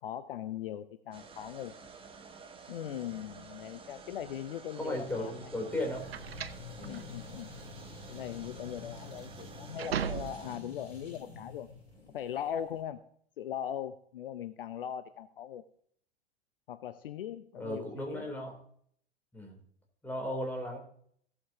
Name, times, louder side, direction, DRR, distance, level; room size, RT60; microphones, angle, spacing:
voice 1, 0.0-1.8 2.7-5.5 6.8-7.5 8.1-11.7 12.1-13.0 13.4-15.6 16.7-18.3, left 10 dB, 60° left, 12 dB, 0.7 m, -40 dB
sound 1, 1.1-10.6, right 5 dB, 15° right, 1.3 m, -51 dB
sound 2, 4.7-10.7, right 8 dB, 70° right, 0.7 m, -39 dB
sound 3, 4.8-12.8, left 4 dB, 85° left, 3.9 m, -49 dB
voice 2, 4.8-6.1 6.8-7.1 17.5-18.5 19.3-19.6 20.0-20.8, left 1 dB, 5° left, 1 dB, 3.3 m, -36 dB
16.0 x 8.4 x 2.8 m, 0.63 s
figure-of-eight pair, 95°, 31 cm